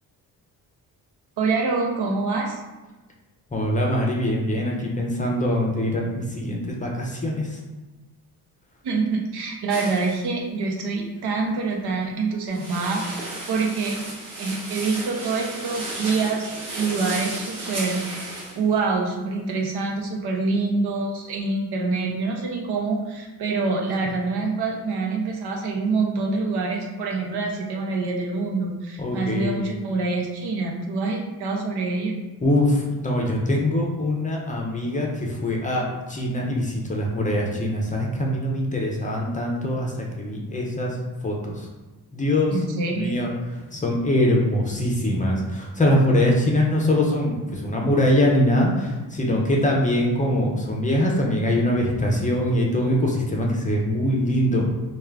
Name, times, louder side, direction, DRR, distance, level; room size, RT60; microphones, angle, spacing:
voice 1, 1.4-2.6 8.8-14.0 14.4-32.2 42.5-43.1, right 3 dB, 85° right, 0 dB, 0.8 m, -26 dB
voice 2, 3.5-7.6 29.0-29.7 32.4-41.0 41.2-41.7 42.1-42.6 42.9-43.3 43.7-54.7, left 1 dB, 20° left, -1 dB, 0.5 m, -23 dB
sound 1, 9.7-10.2 12.5-18.6, right 2 dB, 55° right, 1.0 m, -34 dB
3.5 x 2.3 x 3.3 m, 1.2 s
wide cardioid pair, 145°, 38 cm